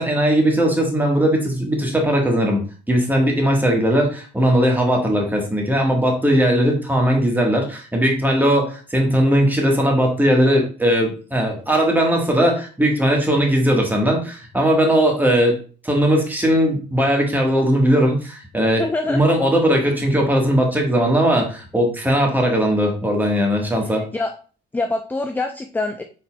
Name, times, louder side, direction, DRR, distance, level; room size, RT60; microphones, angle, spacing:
voice 1, 0.0-2.6 2.9-15.5 15.8-24.0, equal, 10° right, 0 dB, 1.3 m, -18 dB
voice 2, 18.8-19.2 23.9-24.3 24.7-26.0, left 2 dB, 10° left, 6 dB, 0.3 m, -25 dB
4.1 x 3.9 x 2.2 m, 0.38 s
cardioid pair, 90°, 20 cm